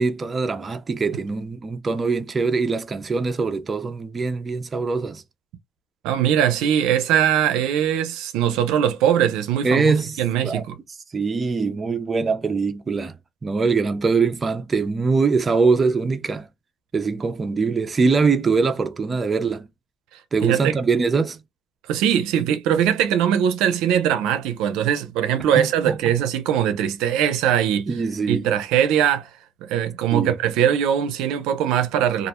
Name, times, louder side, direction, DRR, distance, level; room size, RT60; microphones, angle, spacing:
voice 1, 0.0-5.2 9.6-10.2 10.4-10.6 11.1-13.1 13.4-16.5 16.9-19.7 20.3-21.4 25.6-26.0 27.9-28.4 30.1-30.4, right 4 dB, 30° right, 0.4 m, -22 dB
voice 2, 6.0-9.9 10.2-10.8 20.4-20.8 21.9-27.9 28.3-29.3 29.6-32.3, right 9 dB, 85° right, 0.4 m, -21 dB
2.4 x 2.0 x 2.9 m
cardioid pair, 95°, 0 cm